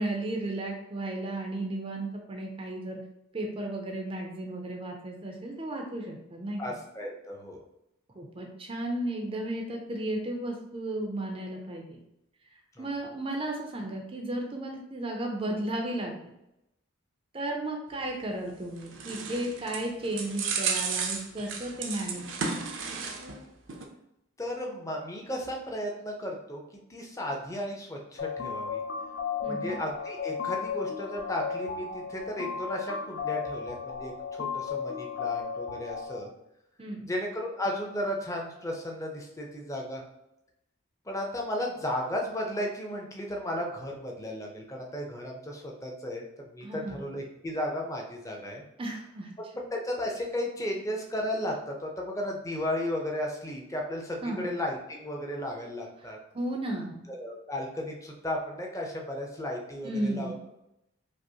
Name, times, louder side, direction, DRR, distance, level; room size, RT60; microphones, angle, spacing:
voice 1, 0.0-3.0 3.3-6.6 8.1-12.0 12.8-16.1 17.3-22.7 29.4-29.8 36.8-37.1 46.6-47.0 48.8-49.3 54.2-54.5 56.0-56.1 56.3-57.0 59.8-60.4, right 1 dB, 30° right, 1 dB, 0.5 m, -34 dB
voice 2, 6.6-7.6 12.7-12.9 24.4-28.8 29.5-36.3 37.0-40.0 41.1-48.6 49.4-56.2 57.2-60.5, left 1 dB, 15° left, 0 dB, 0.6 m, -34 dB
sound 1, 18.5-23.4 23.7-23.8, right 5 dB, 70° right, 0.6 m, -33 dB
sound 2, 28.2-36.2, left 6 dB, 70° left, 0.5 m, -34 dB
5.1 x 2.0 x 2.7 m, 0.85 s
head